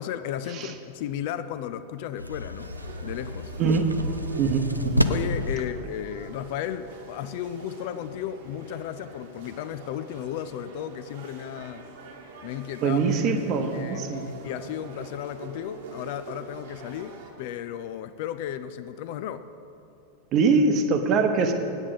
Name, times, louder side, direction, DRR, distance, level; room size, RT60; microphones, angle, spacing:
voice 1, 0.0-2.7 3.0-3.5 5.1-11.9 12.4-13.1 13.7-19.5, left 10 dB, 50° left, 12 dB, 0.4 m, -34 dB
sound 1, 2.2-5.6, equal, 85° right, 0.4 m, -29 dB
sound 2, 2.6-17.3, right 4 dB, 55° right, 1.3 m, -45 dB
voice 2, 3.6-3.9 4.4-5.1 12.8-14.3 20.3-21.5, right 4 dB, 35° right, 7 dB, 0.9 m, -23 dB
8.6 x 8.0 x 7.2 m, 2.7 s
figure-of-eight pair, 90°, 0 cm